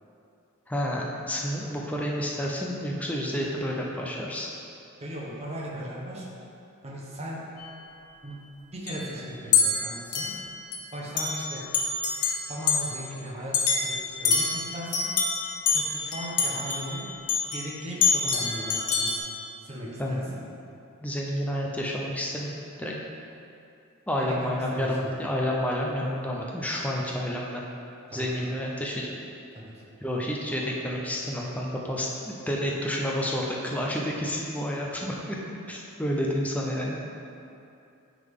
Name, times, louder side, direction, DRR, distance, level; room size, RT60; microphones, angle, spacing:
voice 1, 0.7-4.5 20.0-20.3 21.0-22.5 22.8-22.9 24.1-27.6 28.1-29.2 30.0-35.4 35.7-37.0, equal, 5° left, -2 dB, 0.5 m, -30 dB
voice 2, 5.0-6.3 6.8-7.4 8.2-8.4 8.7-10.3 10.9-11.6 12.5-15.1 15.7-17.1 17.5-19.1 19.6-20.4 24.2-25.2 28.1-28.3 29.5-29.8, equal, 30° right, -4 dB, 1.0 m, -37 dB
sound 1, 7.6-7.7 8.9-9.0 9.5-10.8 11.2-11.5 11.7-12.9 13.5-17.7 18.0-19.2, left 5 dB, 90° left, 0.8 m, -26 dB
9.3 x 3.8 x 3.6 m, 2.7 s
head